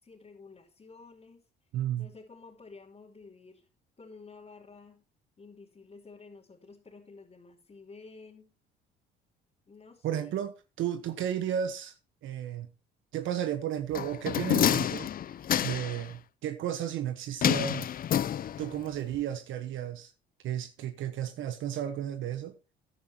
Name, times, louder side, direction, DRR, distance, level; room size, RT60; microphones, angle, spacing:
voice 1, 0.0-1.4 2.0-3.7 4.0-5.0 5.4-8.5 9.7-10.4, left 4 dB, 30° left, 3.1 m, -51 dB
voice 2, 1.7-2.1 10.0-12.7 13.1-15.1 15.6-17.9 18.6-20.1 20.4-22.5, right 10 dB, 70° right, 1.2 m, -33 dB
sound 1, 13.9-16.0 17.4-18.8 19.1-19.2, left 10 dB, 45° left, 0.6 m, -28 dB
15.0 x 9.9 x 2.9 m
supercardioid pair, 80°, 21 cm